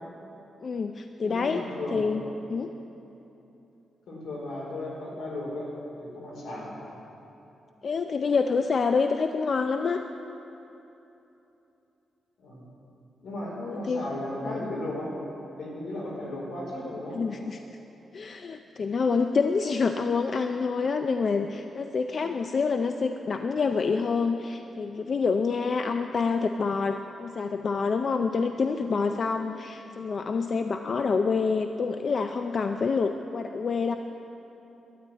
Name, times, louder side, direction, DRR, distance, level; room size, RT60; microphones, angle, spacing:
voice 1, 0.6-1.6 1.9-2.2 2.5-2.7 7.8-10.0 13.6-14.0 14.5-14.6 17.1-17.8 18.1-33.9, left 5 dB, 45° left, 6 dB, 0.5 m, -27 dB
voice 2, 1.2-2.0 4.1-5.7 6.0-6.7 12.4-12.7 13.2-15.1 15.6-17.2, left 1 dB, 80° left, -3 dB, 4.5 m, -35 dB
12.5 x 10.0 x 9.6 m, 3.0 s
wide cardioid pair, 140°, 0 cm